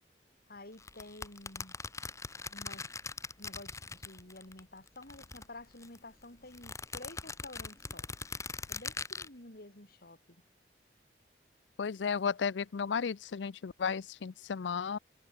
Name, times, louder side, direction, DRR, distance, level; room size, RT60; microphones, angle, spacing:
voice 1, 0.5-1.8 2.5-2.9 3.4-8.1 8.7-10.2, left 2 dB, 60° left, 4.0 m, -50 dB
sound 1, 0.8-4.6 4.9-6.0 6.5-9.3, left 4 dB, 15° left, 0.8 m, -41 dB
voice 2, 11.8-15.0, left 6 dB, 90° left, 0.5 m, -34 dB
head